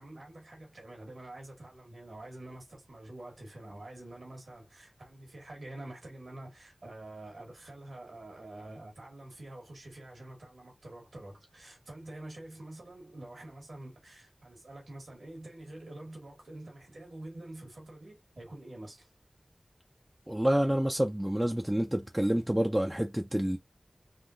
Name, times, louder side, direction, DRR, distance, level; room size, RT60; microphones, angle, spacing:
voice 1, 0.0-19.1, right 1 dB, 85° right, 1.4 m, -47 dB
voice 2, 20.3-23.6, right 1 dB, 10° right, 0.4 m, -28 dB
3.6 x 2.3 x 2.5 m
wide cardioid pair, 45°, 0 cm